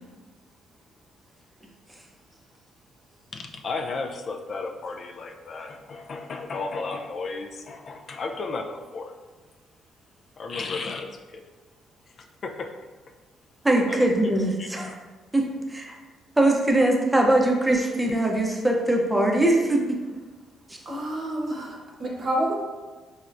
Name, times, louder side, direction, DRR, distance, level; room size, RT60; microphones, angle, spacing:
voice 1, 3.3-9.1 10.4-11.4 12.4-12.7 13.9-14.1 14.6-14.8, left 3 dB, 50° left, 3 dB, 0.3 m, -34 dB
voice 2, 13.6-14.9 15.3-15.9 16.4-20.0, right 1 dB, 10° right, 0 dB, 0.6 m, -21 dB
voice 3, 20.8-22.5, right 1 dB, 45° right, -2 dB, 0.9 m, -28 dB
4.4 x 2.1 x 2.4 m, 1.3 s
cardioid pair, 75°, 0 cm